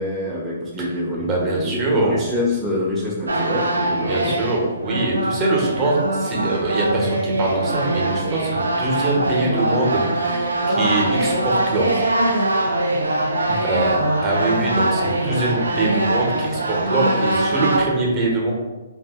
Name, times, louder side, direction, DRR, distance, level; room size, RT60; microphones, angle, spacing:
voice 1, 0.0-4.4 13.5-13.6, left 1 dB, 5° right, -9 dB, 0.5 m, -26 dB
voice 2, 0.8-2.2 4.1-12.1 13.6-14.0 14.2-18.5, right 2 dB, 25° right, -2 dB, 0.8 m, -23 dB
sound 1, 3.3-17.9, right 1 dB, 90° right, 0.5 m, -22 dB
2.6 x 2.6 x 3.5 m, 1.2 s
hypercardioid pair, 130°, 0 cm